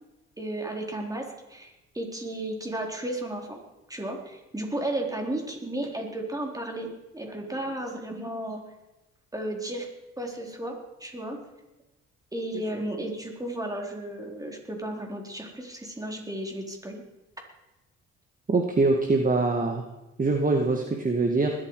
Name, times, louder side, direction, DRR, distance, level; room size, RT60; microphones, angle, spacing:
voice 1, 0.4-3.6 3.9-8.6 9.3-9.9 10.2-11.4 12.3-17.0, right 1 dB, 10° right, 1 dB, 4.1 m, -34 dB
voice 2, 18.5-19.8 20.2-21.5, right 3 dB, 25° right, 3 dB, 2.0 m, -23 dB
20.5 x 13.5 x 4.9 m, 1.0 s
cardioid pair, 90°, 30 cm